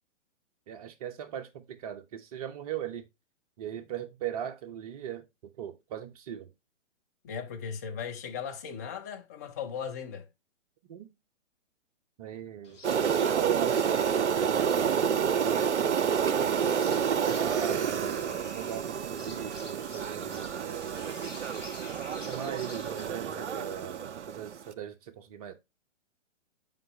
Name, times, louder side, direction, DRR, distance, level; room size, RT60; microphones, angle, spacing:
voice 1, 0.7-3.0 3.6-6.5 10.9-11.1 12.2-16.5 17.2-21.1 22.1-25.5, right 10 dB, 30° right, 0.8 m, -39 dB
voice 2, 7.2-10.3, left 7 dB, 15° left, 0.4 m, -37 dB
sound 1, 12.6-23.0, left 3 dB, 80° left, 2.1 m, -51 dB
sound 2, 12.8-24.6, right 7 dB, 65° right, 0.6 m, -29 dB
7.7 x 4.9 x 3.0 m
figure-of-eight pair, 120°, 37 cm